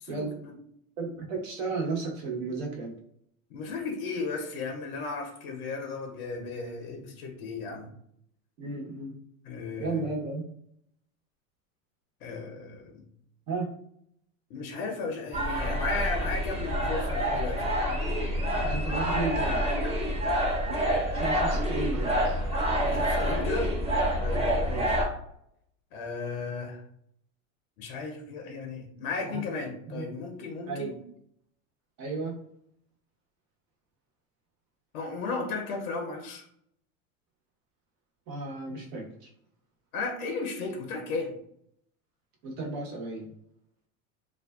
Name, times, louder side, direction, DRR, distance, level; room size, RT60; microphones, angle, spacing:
voice 1, 0.0-0.5 3.5-7.9 9.4-10.1 12.2-13.0 14.5-17.7 22.8-23.8 24.2-25.0 25.9-26.8 27.8-31.0 34.9-36.4 39.9-41.4, left 4 dB, 85° left, 3 dB, 0.7 m, -35 dB
voice 2, 1.0-3.0 8.6-9.1 9.8-10.4 13.5-13.7 18.6-19.6 21.1-22.4 24.7-24.9 29.2-29.4 29.9-30.0 30.7-31.0 32.0-32.3 38.3-39.1 42.4-43.3, right 3 dB, 70° right, 0 dB, 1.0 m, -33 dB
sound 1, 15.3-25.0, equal, 15° right, 0.8 m, -27 dB
2.5 x 2.2 x 2.3 m, 0.69 s
supercardioid pair, 100°, 42 cm